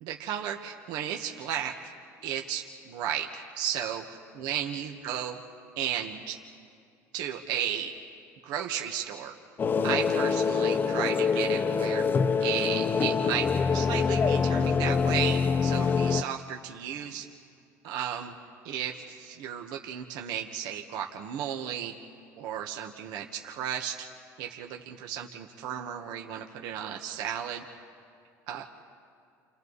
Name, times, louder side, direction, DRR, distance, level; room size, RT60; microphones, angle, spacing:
voice 1, 0.0-1.9 2.2-5.4 5.8-6.4 7.1-7.9 8.4-9.3 9.8-12.0 12.4-13.5 13.7-17.3 17.8-18.3 18.6-21.9 22.4-23.9 24.4-27.6 28.5-28.6, right 9 dB, 65° right, 2 dB, 1.5 m, -34 dB
sound 1, 9.6-16.2, left 5 dB, 25° left, 0.6 m, -25 dB
30.0 x 29.5 x 4.2 m, 2.4 s
supercardioid pair, 115°, 7 cm